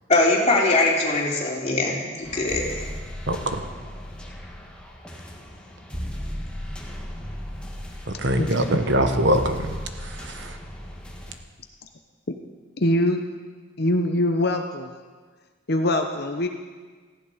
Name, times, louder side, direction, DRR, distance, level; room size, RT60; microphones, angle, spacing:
voice 1, 0.1-2.9, left 2 dB, 35° left, -2 dB, 3.0 m, -21 dB
sound 1, 2.2-11.4, equal, 5° left, 1.7 m, -36 dB
voice 2, 3.3-3.6 8.1-10.6, right 1 dB, 60° right, 7 dB, 1.2 m, -23 dB
voice 3, 12.8-13.2 13.8-14.9 15.7-16.5, left 1 dB, 50° left, 5 dB, 0.9 m, -22 dB
17.5 x 15.0 x 5.1 m, 1.5 s
head